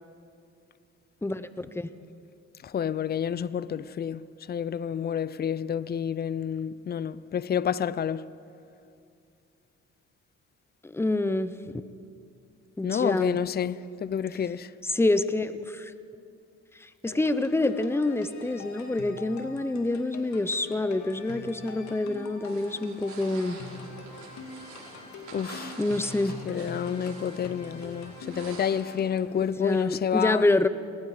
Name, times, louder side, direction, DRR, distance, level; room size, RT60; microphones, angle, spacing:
voice 1, 1.2-1.9 10.8-11.5 12.8-13.4 14.8-15.9 16.8-23.6 25.8-26.4 29.4-30.7, left 2 dB, 10° left, 0.8 m, -27 dB
voice 2, 2.6-8.3 12.8-14.7 25.3-25.8 26.5-30.6, left 8 dB, 35° left, 0.5 m, -29 dB
sound 1, 17.1-29.4, left 4 dB, 65° left, 2.4 m, -44 dB
sound 2, 22.4-29.0, right 3 dB, 75° right, 6.5 m, -46 dB
28.5 x 19.5 x 5.0 m
cardioid pair, 90°, 30 cm